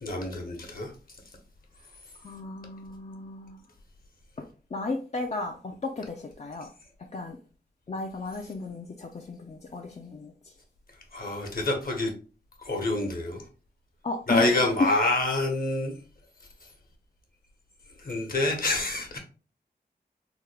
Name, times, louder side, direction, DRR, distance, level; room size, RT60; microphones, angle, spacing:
voice 1, 0.0-0.9 11.1-12.1 12.6-13.4 14.3-15.9 18.0-19.2, left 2 dB, 55° left, 1.1 m, -27 dB
voice 2, 2.2-3.6 4.4-6.7 7.1-7.4 7.9-10.3 14.0-14.6, left 3 dB, 40° left, 0.5 m, -34 dB
3.5 x 2.2 x 3.3 m
cardioid pair, 55°, 18 cm